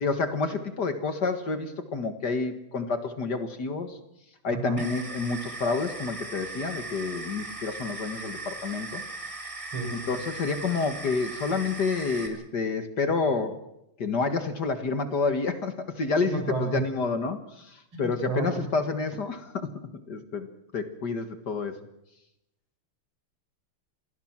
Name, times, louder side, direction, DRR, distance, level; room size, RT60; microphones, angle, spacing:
voice 1, 0.0-4.0 4.4-9.0 10.1-13.6 14.0-19.7 20.1-20.5 20.7-21.8, left 4 dB, 50° left, 8 dB, 2.1 m, -29 dB
voice 2, 4.5-4.8 9.7-9.9 16.3-16.8 17.9-18.6, right 5 dB, 70° right, 4 dB, 6.9 m, -31 dB
sound 1, 4.8-12.3, right 3 dB, 15° right, 3.2 m, -38 dB
28.0 x 19.5 x 6.0 m, 0.84 s
omnidirectional pair, 2.4 m